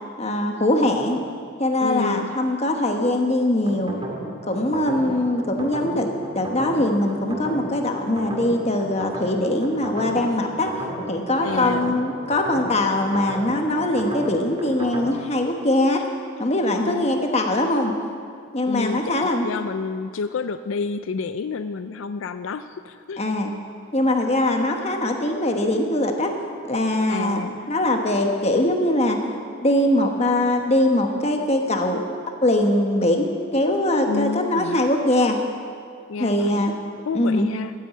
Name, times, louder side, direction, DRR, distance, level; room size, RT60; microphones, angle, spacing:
voice 1, 0.2-1.2 1.6-3.9 4.5-10.7 11.1-16.0 16.4-18.0 18.5-19.4 23.2-23.5 23.9-26.3 26.6-29.2 29.6-32.0 32.4-33.3 33.5-35.4 36.2-36.8 37.1-37.5, left 1 dB, 30° left, 3 dB, 1.2 m, -22 dB
voice 2, 1.8-2.3 11.4-12.0 16.8-17.3 18.7-23.2 27.1-27.7 34.1-34.8 36.1-36.7 37.1-37.7, left 4 dB, 75° left, 11 dB, 0.4 m, -29 dB
sound 1, 3.7-15.1, right 1 dB, 25° right, 2.1 m, -33 dB
12.0 x 9.9 x 8.3 m, 2.2 s
head